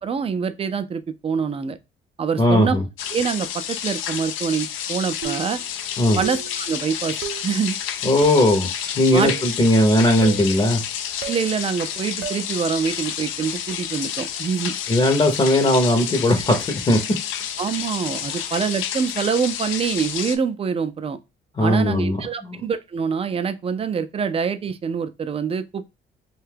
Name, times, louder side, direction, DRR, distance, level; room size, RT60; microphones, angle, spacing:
voice 1, 0.0-1.8 2.2-2.8 3.1-5.6 6.2-7.2 7.4-7.8 9.1-9.3 11.2-14.8 17.6-21.2 21.6-25.9, right 6 dB, 30° right, 0.4 m, -25 dB
voice 2, 2.4-2.8 6.0-6.2 8.0-8.7 9.0-10.8 14.9-17.0 21.6-22.6, left 1 dB, 25° left, 0.7 m, -18 dB
sound 1, 3.0-20.4, left 9 dB, 80° left, 0.4 m, -30 dB
sound 2, 5.2-5.6 6.2-6.6 7.2-7.5 8.2-8.5 9.2-9.5 10.2-10.5 11.2-11.5 12.2-12.5, right 10 dB, 70° right, 0.6 m, -32 dB
2.7 x 2.2 x 3.3 m
cardioid pair, 90°, 20 cm